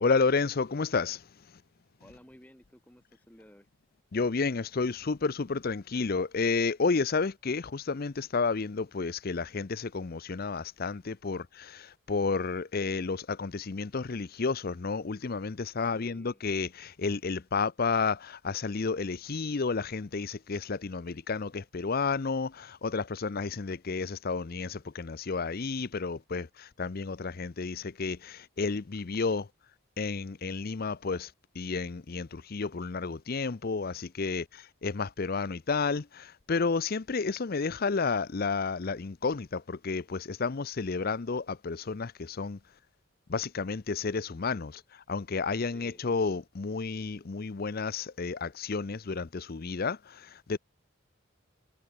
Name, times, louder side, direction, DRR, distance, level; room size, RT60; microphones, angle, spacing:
voice 1, 0.0-1.2 4.1-29.5 30.0-42.6 43.3-50.6, left 4 dB, 45° left, 0.6 m, -31 dB
voice 2, 2.0-3.7 15.9-16.4 45.7-46.1, equal, 5° left, 2.4 m, -55 dB
head